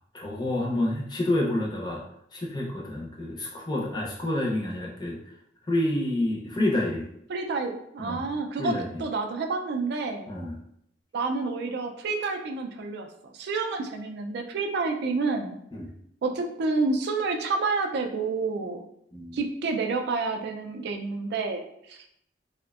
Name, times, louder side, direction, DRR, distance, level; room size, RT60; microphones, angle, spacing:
voice 1, 0.1-2.0 2.3-5.2 5.7-7.1 8.0-8.3 8.6-9.0 10.3-10.6 15.7-15.9 19.1-19.4, left 1 dB, 25° left, -3 dB, 0.5 m, -28 dB
voice 2, 7.3-10.3 11.1-15.6 16.2-18.8 19.3-22.0, right 3 dB, 60° right, 5 dB, 0.3 m, -29 dB
2.5 x 2.1 x 2.3 m, 0.73 s
head